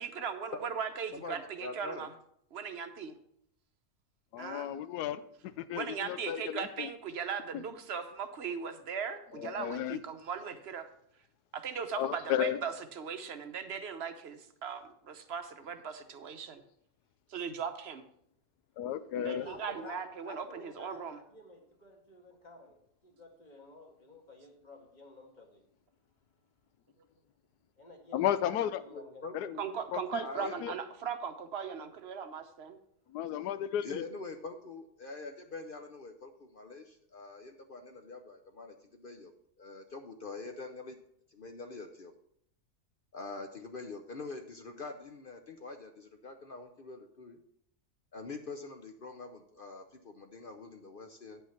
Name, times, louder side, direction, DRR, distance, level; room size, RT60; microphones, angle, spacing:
voice 1, 0.0-2.1 2.5-3.1 4.4-4.8 5.7-10.9 11.5-16.6 17.3-18.0 19.1-21.2 29.6-32.8, right 6 dB, 50° right, 8 dB, 0.9 m, -38 dB
voice 2, 1.1-2.1 28.6-29.7 30.2-30.8 33.8-39.3 39.6-41.0 41.3-42.1 43.1-47.4 48.1-51.4, left 3 dB, 50° left, 6 dB, 0.6 m, -44 dB
voice 3, 4.3-6.9 7.5-7.6 9.3-10.0 12.0-12.6 18.8-19.5 28.1-28.8 29.3-29.5 29.9-30.7 33.1-34.0, left 11 dB, 90° left, 13 dB, 1.1 m, -34 dB
voice 4, 19.4-22.8 23.0-25.6 27.8-28.2 28.6-29.3, left 2 dB, 30° left, 1 dB, 1.9 m, -52 dB
9.5 x 5.7 x 5.7 m, 0.71 s
omnidirectional pair, 1.7 m